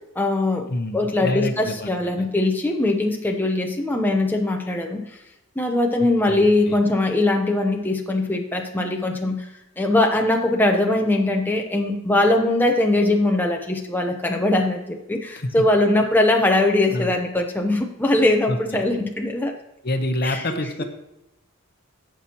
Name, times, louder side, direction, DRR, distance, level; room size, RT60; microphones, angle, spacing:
voice 1, 0.2-5.0 5.6-9.5 9.8-19.5 20.2-20.6, left 2 dB, 10° left, 2 dB, 0.7 m, -21 dB
voice 2, 0.7-1.9 2.2-2.3 6.0-6.8 15.4-15.7 16.9-17.1 18.5-18.8 19.8-20.8, left 1 dB, 45° left, 7 dB, 0.9 m, -27 dB
16.5 x 6.0 x 2.9 m, 0.89 s
head